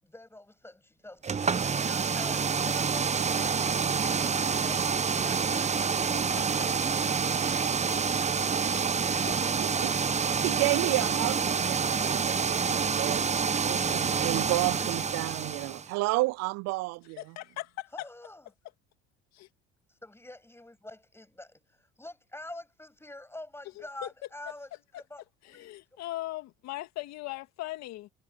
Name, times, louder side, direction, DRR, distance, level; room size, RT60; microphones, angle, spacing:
voice 1, 0.0-3.7 4.0-6.9 17.9-18.5 19.9-24.7 25.0-25.7, left 1 dB, 10° left, 7.4 m, -47 dB
sound 1, 1.2-15.9, right 5 dB, 25° right, 1.0 m, -28 dB
voice 2, 6.1-6.4 7.3-7.4 8.1-8.4 9.1-9.3 17.2-17.9 19.3-19.5 24.0-24.1 25.5-28.1, left 17 dB, 65° left, 2.2 m, -39 dB
voice 3, 9.6-9.9 10.4-13.3 13.6-17.2, right 23 dB, 60° right, 0.4 m, -31 dB
hypercardioid pair, 75°, 29 cm